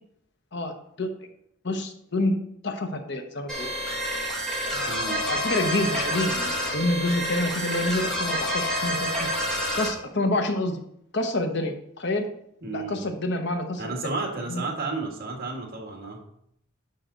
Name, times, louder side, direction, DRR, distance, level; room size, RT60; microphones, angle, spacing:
voice 1, 0.5-1.1 1.6-2.4 2.6-3.7 4.7-9.3 9.7-10.8 11.1-12.2 12.7-14.1 14.5-14.6, left 1 dB, 60° left, 5 dB, 1.1 m, -28 dB
sound 1, 3.5-9.9, equal, 5° left, 2.4 m, -28 dB
voice 2, 4.9-5.2 12.6-13.0 13.8-16.2, right 3 dB, 50° right, 1 dB, 2.0 m, -32 dB
10.5 x 5.9 x 4.0 m, 0.72 s
head